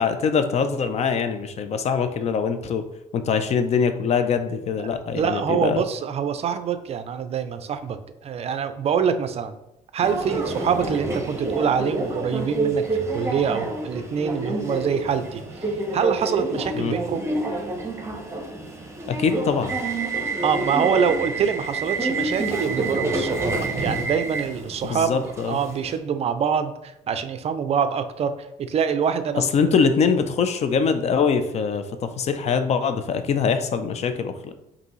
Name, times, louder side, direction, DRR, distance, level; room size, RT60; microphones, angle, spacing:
voice 1, 0.0-2.8 3.1-5.8 16.7-17.0 19.1-19.7 24.8-25.6 29.4-34.5, left 6 dB, 45° left, 9 dB, 0.4 m, -23 dB
voice 2, 4.8-9.5 9.9-17.3 20.4-28.3 28.6-29.5, right 7 dB, 45° right, 10 dB, 0.4 m, -25 dB
Subway metro underground, 10.0-26.0, right 2 dB, 20° right, 0.8 m, -28 dB
5.2 x 2.6 x 3.0 m, 0.87 s
cardioid pair, 90°, 15 cm